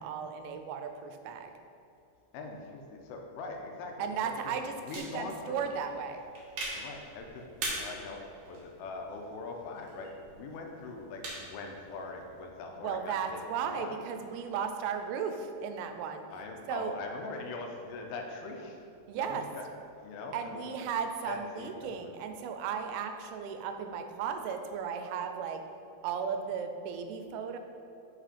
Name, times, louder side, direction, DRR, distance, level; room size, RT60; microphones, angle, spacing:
voice 1, 0.0-1.5 4.0-6.2 12.8-16.2 16.7-17.0 19.1-19.4 20.3-25.6 26.0-27.6, right 7 dB, 85° right, 7 dB, 2.5 m, -35 dB
voice 2, 2.3-4.3 4.8-5.7 6.8-13.4 13.7-13.9 16.3-18.8 19.1-19.6 20.0-20.6 21.3-22.1, left 3 dB, 85° left, 2 dB, 2.5 m, -42 dB
sound 1, 4.9-12.5, right 2 dB, 70° right, 1.4 m, -43 dB
6.0 x 4.9 x 5.1 m, 2.7 s
omnidirectional pair, 4.4 m